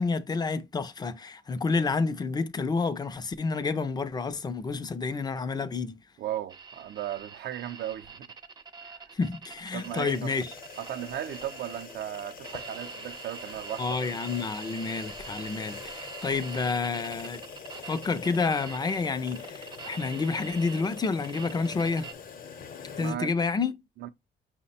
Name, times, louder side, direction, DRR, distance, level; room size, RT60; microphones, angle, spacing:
voice 1, 0.0-5.9 9.1-10.5 13.8-17.4 17.9-22.1 23.0-23.8, left 4 dB, 25° left, 0.4 m, -29 dB
voice 2, 6.2-8.3 8.8-9.1 9.7-10.3 10.8-14.0 23.0-23.3 24.0-24.1, right 12 dB, 75° right, 0.5 m, -36 dB
sound 1, 6.5-22.1, right 5 dB, 25° right, 0.5 m, -44 dB
sound 2, 9.7-23.1, left 6 dB, 55° left, 0.8 m, -44 dB
5.7 x 2.1 x 4.1 m
cardioid pair, 135°, 18 cm